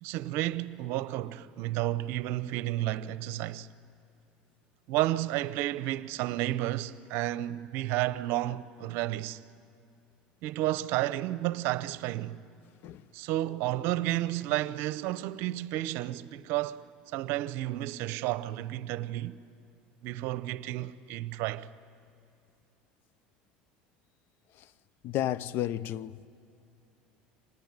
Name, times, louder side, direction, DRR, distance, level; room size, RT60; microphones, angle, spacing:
voice 1, 0.0-3.7 4.9-9.4 10.4-12.4 13.1-16.8 17.1-19.4 20.0-21.7, right 15 dB, 65° right, 0.7 m, -31 dB
voice 2, 25.0-26.3, left 12 dB, 60° left, 0.6 m, -32 dB
25.5 x 19.5 x 9.7 m
hypercardioid pair, 85°, 4 cm